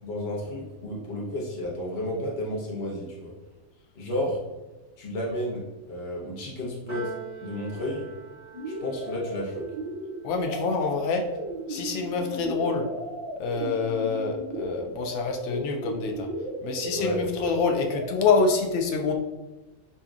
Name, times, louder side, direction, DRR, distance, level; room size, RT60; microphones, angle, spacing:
voice 1, 0.0-3.3 3.9-4.4 5.0-5.6 5.9-7.1 7.4-8.1 8.7-9.6 17.0-17.2, left 1 dB, 40° left, -4 dB, 1.0 m, -32 dB
Piano, 6.9-13.4, right 8 dB, 60° right, 1.3 m, -46 dB
sound 1, 8.5-18.1, right 1 dB, 45° right, 0.3 m, -35 dB
voice 2, 10.2-11.2 11.7-12.9 13.4-16.3 16.6-19.1, left 4 dB, 70° left, 2 dB, 0.8 m, -26 dB
5.1 x 2.7 x 2.4 m, 1.1 s
omnidirectional pair, 1.4 m